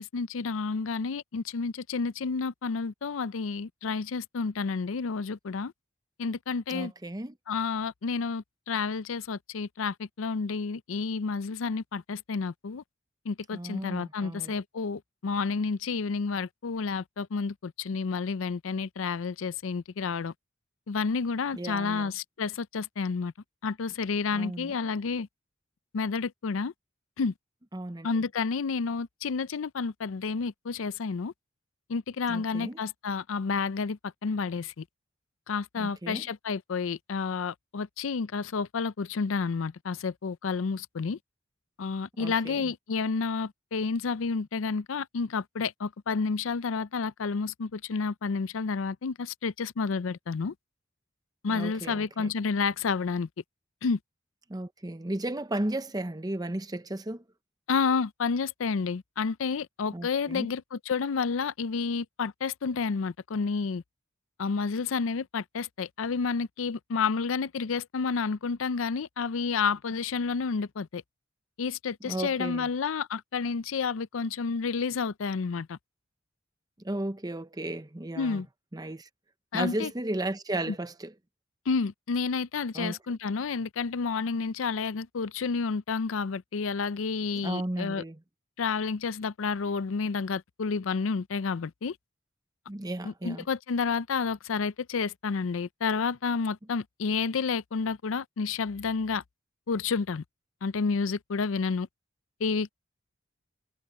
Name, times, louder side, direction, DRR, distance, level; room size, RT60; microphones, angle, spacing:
voice 1, 0.0-5.7 6.2-6.9 7.5-12.8 13.3-20.3 20.9-23.3 23.6-25.3 25.9-26.7 27.2-27.3 28.0-31.3 31.9-34.8 35.5-41.2 41.8-50.5 51.4-53.3 53.8-54.0 57.7-63.8 64.4-71.0 71.6-75.8 78.2-78.5 79.5-79.9 80.7-80.8 81.7-88.0 88.6-92.0 93.0-99.2 99.7-100.2 100.6-101.9 102.4-102.7, left 5 dB, 90° left, 0.5 m, -30 dB
voice 2, 6.7-7.3 13.5-14.6 21.5-22.1 24.3-24.7 27.7-28.2 32.3-32.8 35.8-36.3 42.2-42.7 51.5-52.3 54.5-57.2 59.9-60.5 72.0-72.7 76.8-78.4 78.7-79.1 79.5-81.1 82.7-83.0 87.3-88.2 92.7-93.4, right 1 dB, 20° right, 0.8 m, -34 dB
head